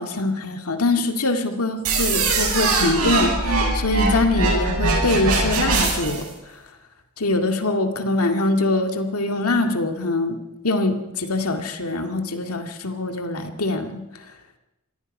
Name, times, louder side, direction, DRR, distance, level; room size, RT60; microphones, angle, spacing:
voice 1, 0.0-6.3 7.2-10.4 10.6-14.0, left 2 dB, 80° left, 6 dB, 2.1 m, -23 dB
sound 1, 1.8-6.2, right 3 dB, 85° right, 7.4 m, -21 dB
26.0 x 19.0 x 5.5 m, 0.96 s
head